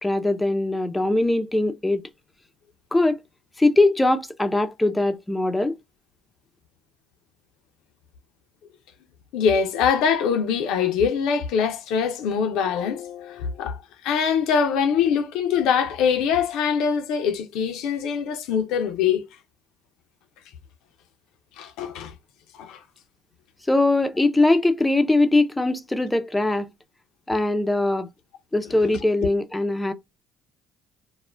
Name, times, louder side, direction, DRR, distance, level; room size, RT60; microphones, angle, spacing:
voice 1, 0.0-2.0 2.9-3.2 3.6-5.7 23.7-26.7 27.3-28.1 28.5-29.9, left 2 dB, 10° left, 0.4 m, -21 dB
voice 2, 9.3-13.8 14.0-19.2 21.6-22.1 22.6-22.8, left 7 dB, 75° left, 0.5 m, -23 dB
2.4 x 2.1 x 3.2 m
hypercardioid pair, 60°, 0 cm